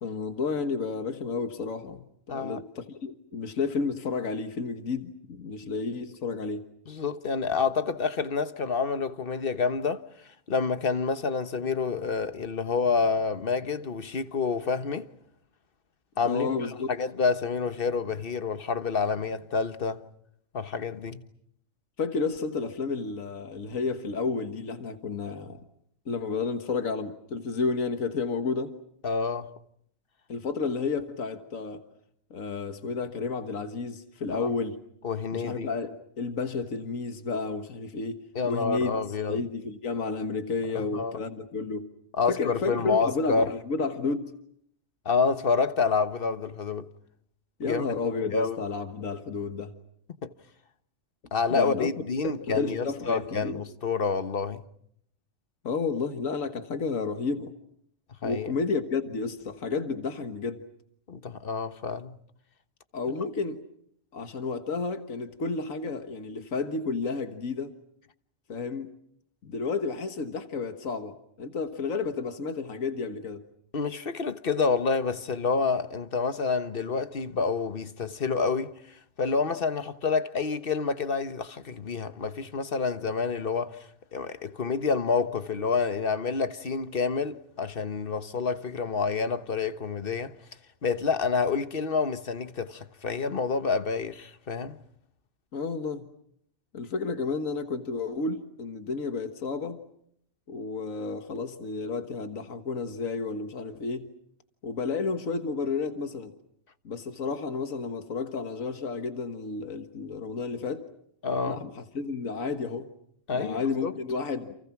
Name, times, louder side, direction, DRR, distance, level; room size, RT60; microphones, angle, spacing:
voice 1, 0.0-6.7 16.2-16.9 22.0-25.6 26.1-28.8 30.3-31.8 32.3-34.8 35.3-39.0 39.3-41.9 42.3-44.3 47.6-49.7 51.5-51.9 52.5-53.6 55.6-57.5 58.2-60.6 62.9-63.6 64.1-67.8 68.5-68.9 69.4-73.4 95.5-96.1 96.7-99.8 100.5-104.1 104.6-106.3 106.8-110.9 111.5-112.9 113.3-114.6, left 4 dB, 80° left, 1.9 m, -31 dB
voice 2, 2.3-2.6 6.9-10.0 10.5-15.1 16.2-20.0 20.5-21.2 29.0-29.5 34.3-34.5 35.0-35.7 38.3-39.4 40.7-41.2 42.1-43.5 45.0-46.9 47.6-47.9 48.3-48.6 50.2-50.3 51.3-54.6 58.2-58.5 61.1-62.2 73.7-90.4 90.8-94.8 111.2-111.6 113.3-113.9, left 5 dB, 45° left, 1.4 m, -28 dB
29.5 x 29.0 x 6.0 m
omnidirectional pair, 1.4 m